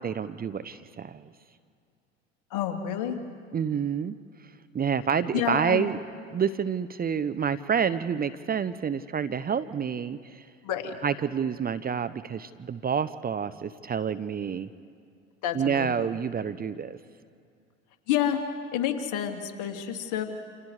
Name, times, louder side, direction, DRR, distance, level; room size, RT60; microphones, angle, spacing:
voice 1, 0.0-1.3 3.5-4.1 4.7-6.0 6.3-10.5 11.0-14.7 15.5-17.0, right 7 dB, 25° right, 13 dB, 0.8 m, -28 dB
voice 2, 2.5-3.2 3.6-3.8 5.3-5.9 10.6-10.9 15.4-16.1 18.1-20.2, left 9 dB, 60° left, 4 dB, 2.8 m, -29 dB
29.5 x 27.5 x 5.0 m, 2.3 s
hypercardioid pair, 75°, 35 cm